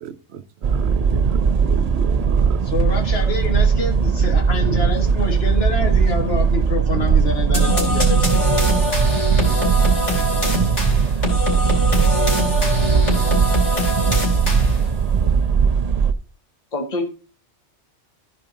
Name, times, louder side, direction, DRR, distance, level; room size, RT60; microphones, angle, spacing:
voice 1, 0.0-2.6, right 8 dB, 65° right, 1.0 m, -33 dB
sound 1, 0.6-16.1, right 6 dB, 50° right, 0.5 m, -19 dB
voice 2, 2.6-8.3, left 2 dB, 55° left, 1.8 m, -26 dB
sound 2, 7.5-14.9, left 1 dB, 70° left, 4.1 m, -23 dB
voice 3, 16.7-17.0, left 2 dB, 35° left, 1.3 m, -27 dB
14.5 x 5.0 x 3.9 m
omnidirectional pair, 1.3 m